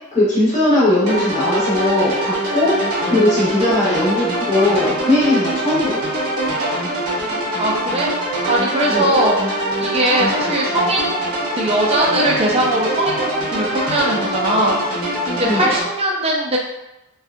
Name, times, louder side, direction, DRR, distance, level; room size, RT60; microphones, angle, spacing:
voice 1, 0.1-6.0 8.9-9.1 15.4-15.7, left 1 dB, 30° left, -9 dB, 0.8 m, -18 dB
sound 1, 1.1-15.8, right 1 dB, 75° right, 0.8 m, -23 dB
voice 2, 7.6-8.1 8.5-9.4 9.8-14.8 15.3-16.6, right 1 dB, 25° right, -2 dB, 0.5 m, -20 dB
2.7 x 2.3 x 2.4 m, 0.95 s
head